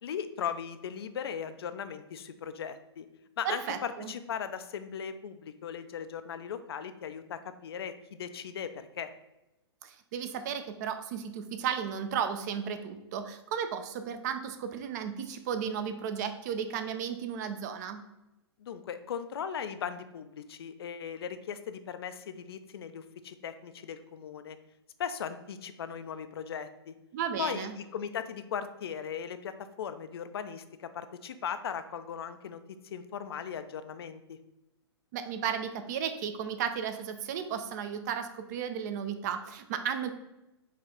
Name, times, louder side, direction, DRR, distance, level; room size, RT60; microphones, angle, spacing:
voice 1, 0.0-3.1 3.4-9.1 18.6-24.6 25.0-26.9 27.4-34.4, left 7 dB, 60° left, 11 dB, 0.4 m, -38 dB
voice 2, 3.4-4.1 9.8-18.0 27.1-27.7 35.1-40.1, right 8 dB, 40° right, 8 dB, 0.4 m, -34 dB
4.8 x 2.4 x 4.2 m, 0.95 s
figure-of-eight pair, 120°, 14 cm